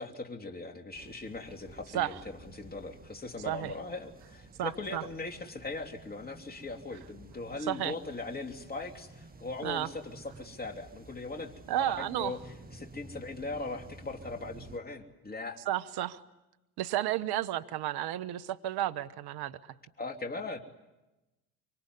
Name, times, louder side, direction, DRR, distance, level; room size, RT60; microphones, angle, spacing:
voice 1, 0.0-12.4 12.7-15.6 20.0-20.6, left 3 dB, 20° left, 3.2 m, -40 dB
sound 1, 0.9-14.8, right 3 dB, 20° right, 2.3 m, -52 dB
voice 2, 4.6-5.0 7.7-7.9 9.6-9.9 11.7-12.3 15.7-16.2 16.8-19.7, right 13 dB, 50° right, 1.3 m, -32 dB
25.5 x 24.0 x 9.8 m
hypercardioid pair, 65°, 47 cm